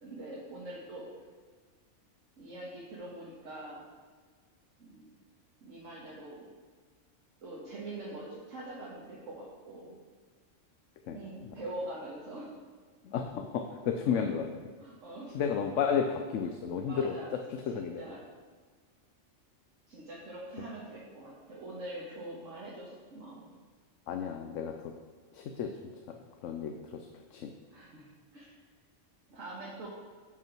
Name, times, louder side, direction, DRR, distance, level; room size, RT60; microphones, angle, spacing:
voice 1, 0.0-1.1 2.4-3.8 4.8-5.1 5.6-6.4 7.4-10.0 11.1-12.5 14.1-14.2 14.8-15.3 16.8-17.3 17.7-18.2 19.9-23.5 27.7-28.1 28.3-28.6 29.3-29.9, right 1 dB, 85° right, -6 dB, 1.9 m, -43 dB
voice 2, 11.0-11.5 13.0-14.5 15.3-17.2 17.7-18.0 24.1-24.9 25.3-25.7 26.1-26.2 26.4-27.1 27.3-27.5, left 7 dB, 80° left, 5 dB, 1.0 m, -32 dB
11.0 x 5.9 x 4.5 m, 1.5 s
omnidirectional pair, 1.3 m